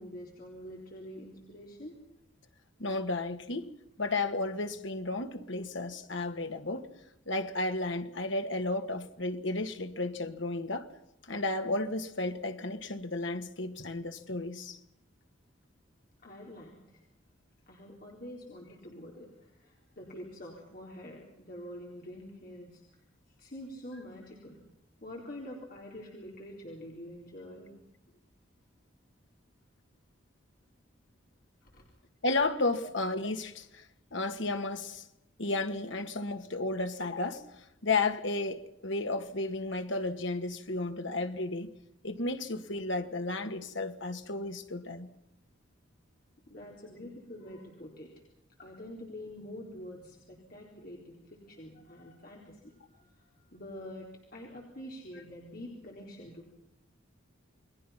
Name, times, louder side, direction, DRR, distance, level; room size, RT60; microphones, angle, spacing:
voice 1, 0.0-1.9 16.2-17.0 17.7-22.8 23.4-24.6 25.0-27.7 31.7-31.9 46.5-48.1 48.6-56.5, left 1 dB, 45° left, 4.1 m, -46 dB
voice 2, 2.8-3.7 4.0-6.9 7.3-10.9 11.2-14.8 32.2-33.9 34.1-35.0 35.4-37.5 37.8-41.7 42.0-45.1, left 2 dB, 70° left, 1.9 m, -33 dB
29.0 x 21.5 x 5.8 m
head